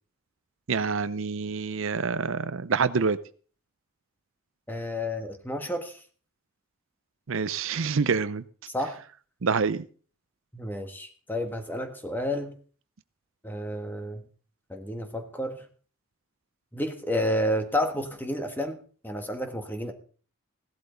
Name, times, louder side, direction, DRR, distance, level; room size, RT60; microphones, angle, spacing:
voice 1, 0.7-3.2 7.3-8.4 9.4-9.8, right 5 dB, 65° right, 14 dB, 0.6 m, -26 dB
voice 2, 4.7-6.0 8.7-9.0 10.5-12.5 13.4-14.2 14.7-15.6 16.7-19.9, left 1 dB, 10° left, 6 dB, 1.5 m, -31 dB
16.0 x 11.5 x 3.9 m, 0.41 s
head